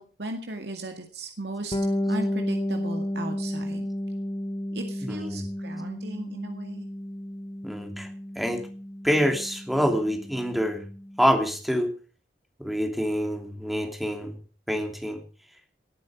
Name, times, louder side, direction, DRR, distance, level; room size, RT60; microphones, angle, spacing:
voice 1, 0.0-3.9 4.7-6.8, right 2 dB, 70° right, 4 dB, 2.1 m, -37 dB
Bass guitar, 1.7-11.3, left 1 dB, 30° left, 2.1 m, -32 dB
voice 2, 5.0-5.4 7.6-8.1 8.3-8.6 9.0-10.8 11.2-11.9 12.6-14.4 14.7-15.2, equal, ahead, 4 dB, 2.9 m, -26 dB
19.0 x 9.1 x 6.2 m, 0.39 s
head